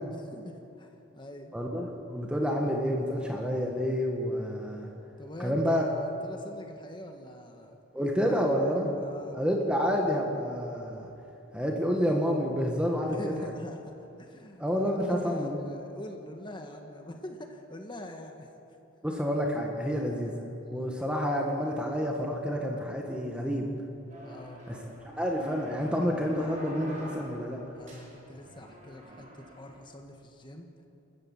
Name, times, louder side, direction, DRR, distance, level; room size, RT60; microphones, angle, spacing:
voice 1, 0.0-1.6 5.2-7.8 8.2-9.5 13.0-18.5 19.8-20.1 20.6-20.9 24.2-24.6 27.7-30.7, left 1 dB, 25° left, 3 dB, 1.5 m, -44 dB
voice 2, 1.5-4.9 5.4-5.9 7.9-8.9 9.3-11.1 11.5-13.3 14.6-15.6 19.0-20.3 20.7-23.7 24.7-24.8 25.2-27.6, equal, 5° right, 0 dB, 1.7 m, -29 dB
sound 1, 24.1-29.9, equal, 40° right, 5.3 m, -46 dB
28.5 x 14.0 x 7.3 m, 2.8 s
head